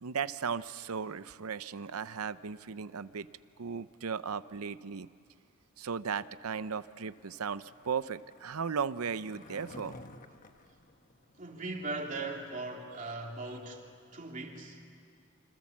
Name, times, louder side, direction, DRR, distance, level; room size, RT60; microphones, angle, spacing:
voice 1, 0.0-3.3 3.6-5.1 5.8-10.0, right 6 dB, 90° right, 15 dB, 0.7 m, -36 dB
Skateboard, 6.5-11.9, left 2 dB, 40° left, 1.2 m, -53 dB
voice 2, 11.4-13.8 14.1-14.8, right 3 dB, 35° right, 0 dB, 3.2 m, -39 dB
27.5 x 26.5 x 7.4 m, 2.3 s
head